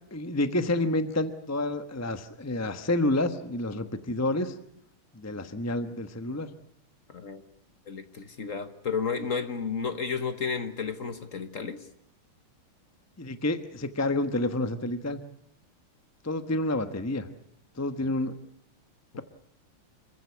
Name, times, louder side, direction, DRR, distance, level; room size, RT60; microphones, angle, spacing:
voice 1, 0.1-4.5 5.1-6.5 13.2-15.2 16.2-17.3 17.8-18.3, left 2 dB, 15° left, 0.7 m, -29 dB
voice 2, 7.1-7.4 7.9-11.8, left 5 dB, 45° left, 1.4 m, -32 dB
26.5 x 15.5 x 9.6 m
omnidirectional pair, 2.4 m